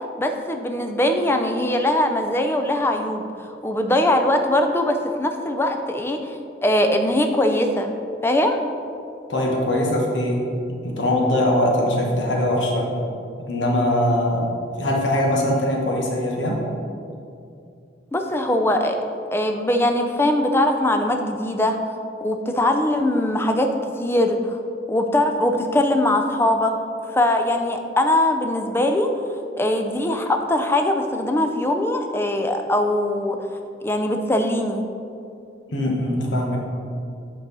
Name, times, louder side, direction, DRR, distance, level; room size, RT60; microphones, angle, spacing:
voice 1, 0.2-3.3 3.6-7.9 8.2-8.6 18.1-19.0 19.3-21.8 22.2-23.7 24.0-24.6 24.9-26.7 27.1-29.1 29.6-33.5 33.8-34.8, left 1 dB, 15° left, 5 dB, 0.4 m, -21 dB
voice 2, 9.3-12.9 13.5-14.5 14.8-16.7 35.7-36.6, left 1 dB, 85° left, -1 dB, 1.2 m, -22 dB
8.1 x 4.7 x 4.0 m, 2.5 s
head